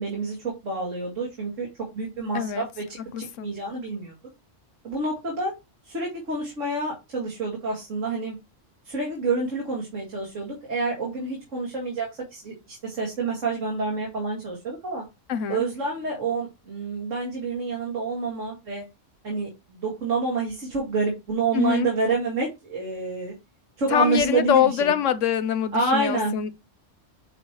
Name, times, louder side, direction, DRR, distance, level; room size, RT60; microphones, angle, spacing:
voice 1, 0.0-1.7 1.9-4.1 4.8-5.5 5.8-8.4 8.8-15.0 15.5-18.8 19.2-23.3 23.8-24.9 25.7-26.3, right 3 dB, 85° right, 2.4 m, -28 dB
voice 2, 2.3-2.7 3.1-3.5 15.3-15.6 21.5-21.9 23.9-26.5, left 8 dB, 80° left, 1.1 m, -24 dB
9.6 x 4.4 x 3.1 m
omnidirectional pair, 1.3 m